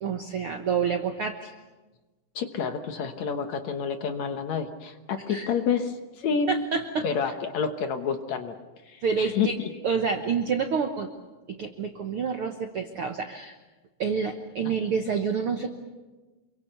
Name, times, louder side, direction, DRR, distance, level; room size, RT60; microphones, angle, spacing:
voice 1, 0.0-1.5 5.3-5.5 6.5-7.1 9.0-9.6 9.8-11.1 11.5-13.5 14.0-15.8, right 6 dB, 65° right, 5 dB, 1.4 m, -28 dB
voice 2, 2.4-6.5 7.0-8.5 8.9-9.7 14.6-14.7, left 6 dB, 60° left, 6 dB, 2.1 m, -29 dB
27.5 x 23.5 x 6.7 m, 1.2 s
omnidirectional pair, 4.1 m